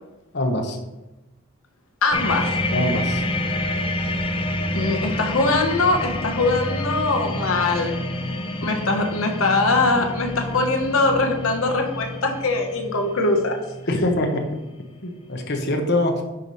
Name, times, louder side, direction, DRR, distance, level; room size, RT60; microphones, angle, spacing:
voice 1, 0.3-0.8 2.7-3.2 13.9-14.4 15.0-16.2, left 1 dB, 55° left, 4 dB, 1.1 m, -23 dB
voice 2, 2.0-2.6 4.7-8.0 8.6-13.6, left 3 dB, 80° left, 3 dB, 1.2 m, -22 dB
sound 1, 2.1-14.9 15.2-15.5, left 1 dB, 25° left, 0.7 m, -28 dB
9.7 x 3.3 x 5.5 m, 1.0 s
head